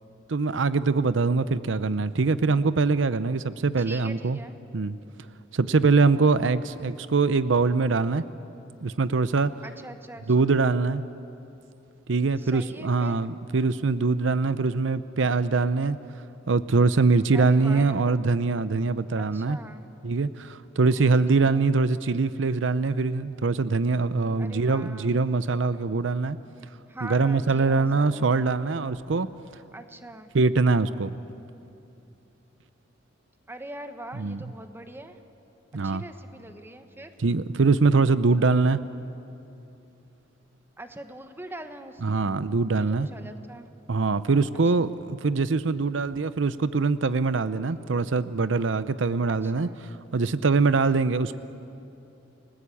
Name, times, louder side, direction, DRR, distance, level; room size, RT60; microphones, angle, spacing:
voice 1, 0.3-4.4 4.7-4.9 5.5-8.2 8.8-9.5 10.3-11.0 12.1-16.0 16.5-19.6 20.0-26.4 27.0-29.3 30.3-31.1 34.2-34.4 35.7-36.0 37.2-38.8 42.0-43.1 43.9-49.7 50.1-51.4, right 4 dB, 75° right, 14 dB, 0.6 m, -23 dB
voice 2, 3.8-4.5 9.6-10.5 12.4-13.2 17.3-18.1 19.2-19.9 20.9-21.7 24.4-25.2 26.9-28.5 29.7-30.3 33.5-35.2 35.8-37.1 40.8-42.3 42.8-43.7 44.5-45.0 49.3-49.8, right 1 dB, 10° right, 7 dB, 1.3 m, -43 dB
30.0 x 20.0 x 8.5 m, 2.8 s
head